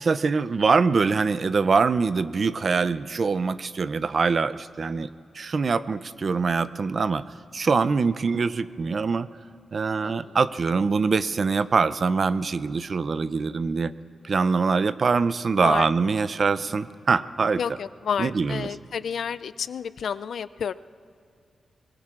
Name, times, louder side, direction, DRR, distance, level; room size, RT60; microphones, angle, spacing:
voice 1, 0.1-5.1 5.3-7.2 7.5-9.3 9.7-13.9 14.2-17.6 18.2-18.7, right 4 dB, 45° right, 15 dB, 0.4 m, -23 dB
voice 2, 10.0-10.4 15.6-15.9 17.6-20.7, left 7 dB, 70° left, 14 dB, 0.3 m, -30 dB
25.0 x 23.0 x 2.4 m, 2.5 s
wide cardioid pair, 125°, 0 cm